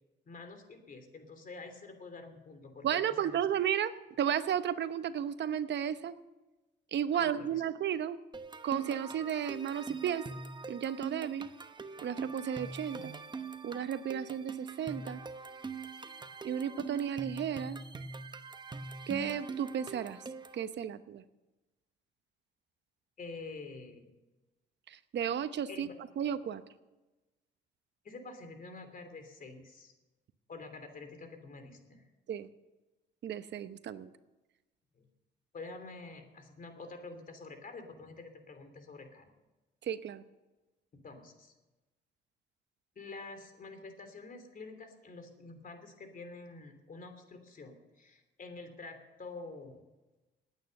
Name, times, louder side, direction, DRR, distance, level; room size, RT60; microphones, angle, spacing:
voice 1, 0.2-3.4 7.1-7.7 23.2-24.1 25.7-25.9 28.0-29.9 30.5-32.0 35.0-35.1 35.5-39.3 40.9-41.5 42.9-49.8, left 3 dB, 45° left, 7 dB, 3.0 m, -47 dB
voice 2, 2.8-6.2 6.9-8.2 8.6-10.3 10.7-11.5 12.0-13.2 13.6-15.2 16.4-17.8 19.1-20.2 20.5-21.2 24.9-25.9 26.2-26.6 32.3-32.5 33.2-34.1 39.8-40.2, right 9 dB, 65° right, 12 dB, 0.9 m, -33 dB
sound 1, 8.3-20.6, right 4 dB, 20° right, 0.9 m, -43 dB
19.0 x 9.2 x 6.7 m, 1.1 s
cardioid pair, 90°, 20 cm